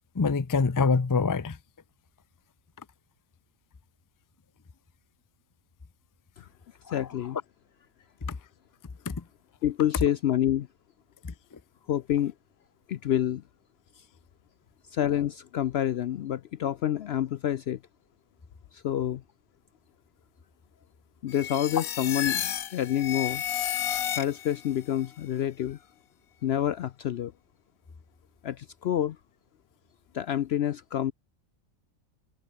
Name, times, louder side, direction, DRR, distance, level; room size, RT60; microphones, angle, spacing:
voice 1, 0.1-1.6 6.9-7.1 8.3-8.4 9.1-9.2 11.2-11.6, left 4 dB, 30° left, 0.3 m, -26 dB
voice 2, 6.9-7.4 9.6-10.7 11.9-12.3 12.9-13.4 14.9-17.8 18.7-19.2 21.2-23.4 24.2-25.8 26.4-27.3 28.4-29.2 30.1-31.1, left 11 dB, 65° left, 0.6 m, -28 dB
sound 1, 21.3-24.7, left 9 dB, 85° left, 1.4 m, -31 dB
omnidirectional pair, 1.5 m